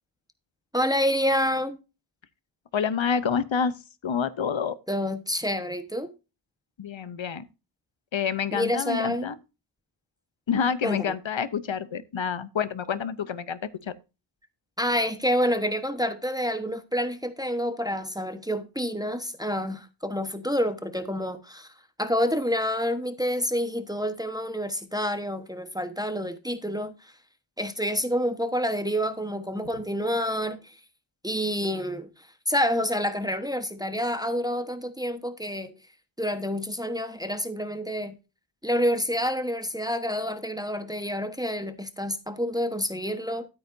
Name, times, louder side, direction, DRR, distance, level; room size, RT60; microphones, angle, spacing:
voice 1, 0.7-1.8 4.9-6.1 8.5-9.3 10.8-11.1 14.8-21.7 22.0-27.1 27.6-30.8 31.2-35.8 36.2-38.2 38.6-43.5, equal, 10° right, 1.1 m, -28 dB
voice 2, 2.7-3.7 4.0-4.8 6.8-7.5 8.1-9.4 10.5-13.9, left 6 dB, 85° left, 0.7 m, -28 dB
13.0 x 8.8 x 2.6 m
wide cardioid pair, 50°, 45 cm